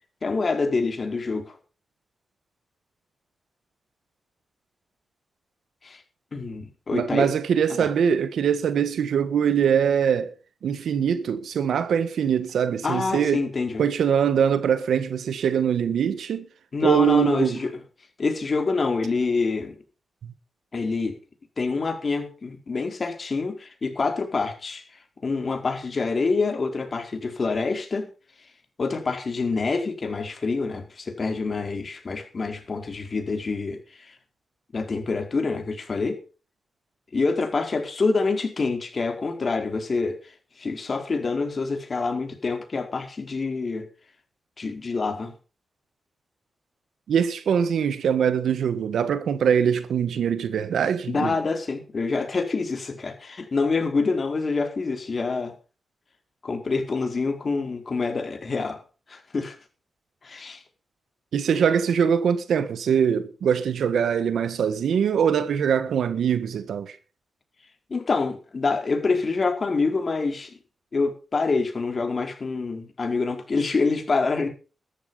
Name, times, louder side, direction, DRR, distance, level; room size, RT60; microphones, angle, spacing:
voice 1, 0.2-1.5 5.8-6.0 6.3-7.3 7.7-7.9 12.8-13.8 16.7-17.7 18.2-19.7 20.7-21.2 21.6-24.8 25.2-28.1 28.8-34.1 34.7-36.2 37.1-40.2 40.6-43.9 44.6-45.3 51.1-55.5 56.4-58.8 59.1-59.5 60.2-60.6 67.9-70.6 70.9-74.5, left 4 dB, 45° left, 4.6 m, -26 dB
voice 2, 6.9-10.3 10.6-13.4 13.8-16.5 16.8-17.6 20.2-20.3 47.1-51.3 61.3-67.0, right 7 dB, 85° right, 1.5 m, -23 dB
13.5 x 12.0 x 5.6 m
cardioid pair, 75°, 0 cm